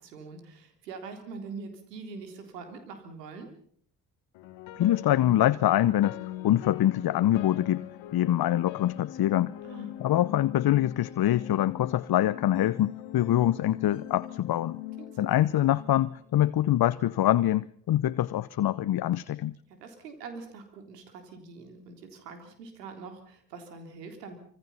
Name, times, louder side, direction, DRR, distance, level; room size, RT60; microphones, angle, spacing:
voice 1, 0.0-3.5 9.6-9.9 15.0-15.3 19.7-24.4, right 4 dB, 85° right, 3.7 m, -43 dB
sound 1, 4.3-16.6, left 12 dB, 70° left, 1.8 m, -42 dB
voice 2, 4.8-6.2 6.4-7.8 8.1-9.5 10.0-14.8 15.2-19.5, left 13 dB, 50° left, 0.9 m, -24 dB
25.5 x 24.5 x 5.8 m
hypercardioid pair, 40°, 47 cm